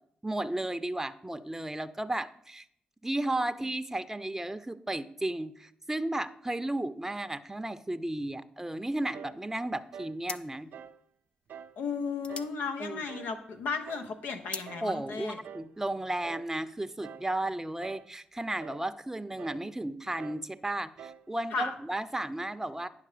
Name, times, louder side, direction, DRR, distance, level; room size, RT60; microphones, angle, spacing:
voice 1, 0.2-2.6 3.0-10.7 12.8-13.0 14.8-22.9, right 1 dB, 15° right, 12 dB, 0.6 m, -34 dB
sound 1, 9.1-9.4 9.9-10.2 10.7-11.0 11.5-11.8 12.3-12.6 13.1-13.4 13.9-14.2 14.7-14.9 15.4-15.8 16.2-16.5 17.0-17.3 17.8-18.2 18.6-18.9 19.4-19.7 20.2-20.5 21.0-21.3, right 7 dB, 75° right, 0.4 m, -46 dB
sound 2, 9.5-9.8 10.2-13.6 13.9-14.8, left 3 dB, 35° left, 0.6 m, -43 dB
voice 2, 11.8-15.4 21.5-21.7, left 5 dB, 80° left, 6 dB, 1.0 m, -34 dB
9.7 x 5.9 x 5.0 m, 0.67 s
supercardioid pair, 50°, 3 cm